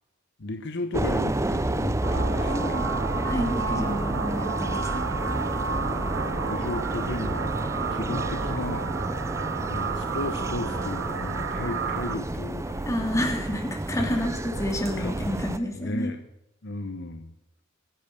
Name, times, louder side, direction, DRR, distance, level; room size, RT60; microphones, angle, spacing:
voice 1, 0.4-2.8 6.3-7.5 7.9-8.9 9.2-9.3 9.7-12.9 13.9-14.3 15.0-15.2 15.7-16.3 16.6-17.3, left 2 dB, 55° left, 8 dB, 1.0 m, -34 dB
sound 1, 0.9-15.6, right 1 dB, 15° right, 0.5 m, -30 dB
sound 2, 2.0-12.1, right 5 dB, 75° right, 1.1 m, -32 dB
voice 2, 2.5-2.8 3.2-5.1 12.8-16.1, left 1 dB, 15° left, 2 dB, 2.9 m, -29 dB
22.5 x 8.7 x 6.8 m, 0.87 s
head